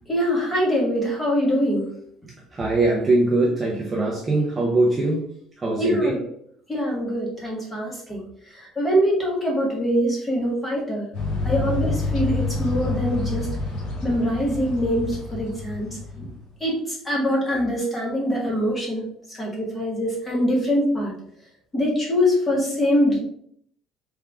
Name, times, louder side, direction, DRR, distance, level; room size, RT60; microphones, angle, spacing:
voice 1, 0.1-1.9 5.8-6.2 6.7-8.2 8.5-11.1 11.4-13.5 14.0-15.9 16.2-16.3 16.6-21.1 21.7-23.2, equal, 15° left, 1.3 m, -23 dB
voice 2, 2.5-5.3 5.6-6.2 11.6-11.7, right 2 dB, 15° right, 0.5 m, -22 dB
sound 1, 11.1-16.4, left 3 dB, 55° left, 1.3 m, -28 dB
3.5 x 3.5 x 3.5 m
cardioid pair, 175°, 0 cm